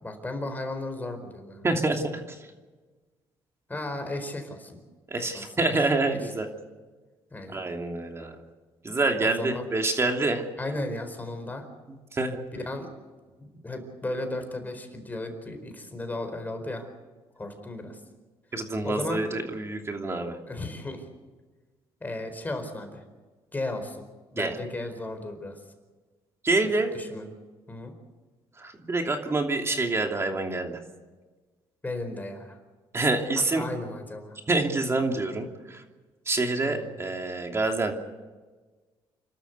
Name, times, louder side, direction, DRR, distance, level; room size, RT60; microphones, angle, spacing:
voice 1, 0.0-1.6 3.7-4.8 5.3-5.4 5.7-5.8 7.3-7.6 9.2-9.6 10.6-11.6 12.5-12.9 13.4-16.9 17.4-18.0 18.8-19.2 20.5-21.1 22.0-23.0 23.5-24.0 24.3-25.6 26.9-27.3 27.7-27.9 31.8-32.6 33.5-34.4 36.6-36.9, left 2 dB, 20° left, 5 dB, 4.5 m, -35 dB
voice 2, 1.6-2.5 5.1-6.5 7.5-8.4 8.8-10.5 12.1-12.4 18.5-20.4 24.4-24.6 26.4-26.9 28.6-30.8 32.9-33.6 34.5-35.8 36.3-37.9, right 2 dB, 25° right, 3 dB, 2.9 m, -27 dB
29.0 x 13.0 x 8.4 m, 1.3 s
cardioid pair, 95°, 10 cm